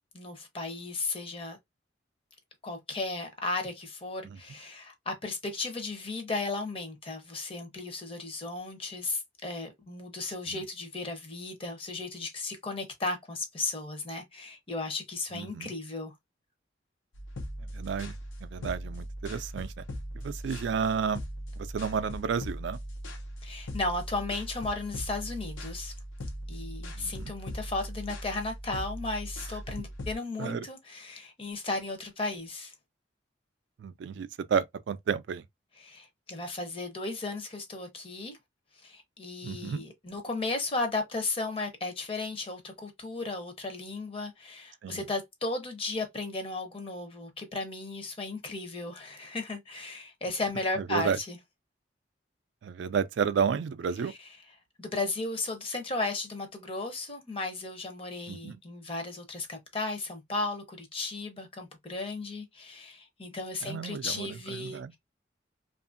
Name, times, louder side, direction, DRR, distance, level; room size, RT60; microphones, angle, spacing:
voice 1, 0.1-1.6 2.6-16.1 23.4-25.9 26.5-32.7 35.8-38.4 38.8-51.4 54.8-65.0, left 3 dB, 30° left, 0.6 m, -35 dB
voice 2, 15.3-15.7 17.7-19.8 20.1-21.2 21.6-22.8 27.0-27.3 29.7-29.8 30.4-30.7 33.8-35.4 39.4-39.8 44.8-45.0 50.8-51.2 52.6-54.1 58.3-58.6 63.6-64.9, right 6 dB, 70° right, 0.3 m, -32 dB
sound 1, 17.1-30.2, equal, 85° left, 0.7 m, -39 dB
2.7 x 2.5 x 2.5 m
head